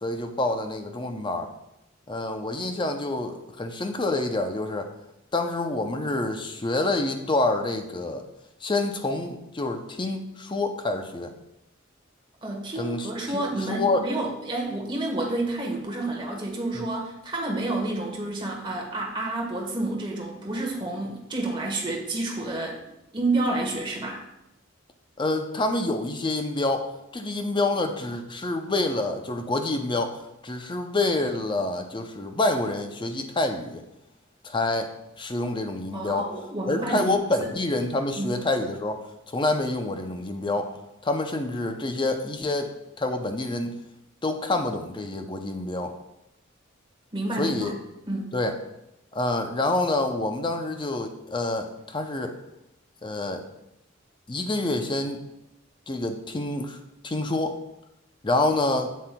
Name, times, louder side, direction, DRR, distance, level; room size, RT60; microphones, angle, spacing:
voice 1, 0.0-1.5 2.1-4.9 5.3-8.2 8.6-11.3 12.8-14.0 16.7-16.9 25.2-33.8 34.4-34.9 35.2-36.3 36.7-39.0 39.3-40.8 41.0-43.8 44.2-45.9 47.4-47.7 48.3-48.5 49.1-52.3 53.0-53.4 54.3-55.2 55.9-56.8 57.0-57.6 58.2-58.9, left 2 dB, 25° left, 6 dB, 0.5 m, -27 dB
voice 2, 12.4-22.8 23.1-24.2 35.9-37.5 38.2-38.3 47.1-47.8 48.1-48.3, right 2 dB, 25° right, -1 dB, 1.2 m, -29 dB
7.6 x 7.5 x 2.2 m, 0.88 s
head